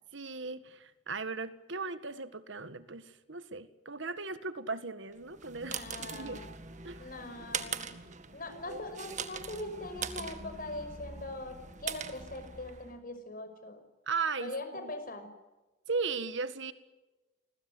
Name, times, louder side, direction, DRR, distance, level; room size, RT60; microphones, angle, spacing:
voice 1, 0.1-5.8 6.1-6.4 6.8-7.0 8.7-8.8 14.1-14.9 15.9-16.7, right 4 dB, 65° right, 12 dB, 1.8 m, -37 dB
sound 1, 5.2-13.0, right 6 dB, 35° right, 1.9 m, -42 dB
voice 2, 5.6-6.4 7.0-7.9 8.3-13.8 14.4-15.3, left 2 dB, 45° left, 8 dB, 5.7 m, -41 dB
29.0 x 21.5 x 7.9 m, 1.1 s
head